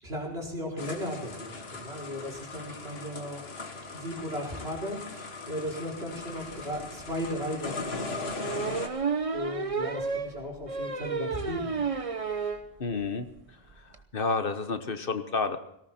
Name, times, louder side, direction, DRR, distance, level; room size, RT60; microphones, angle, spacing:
voice 1, 0.0-3.4 3.9-9.0 9.3-11.8, equal, 80° right, -1 dB, 4.9 m, -36 dB
sound 1, 0.8-8.9, left 3 dB, 75° left, 1.8 m, -39 dB
sound 2, 6.6-6.7 7.1-7.2 8.4-12.7 13.1-13.2 13.4-13.5 13.7-14.0, right 4 dB, 35° right, 1.1 m, -31 dB
voice 2, 12.8-13.3 14.1-15.6, left 4 dB, 60° left, 9 dB, 1.4 m, -29 dB
18.5 x 18.0 x 4.4 m, 0.78 s
omnidirectional pair, 1.0 m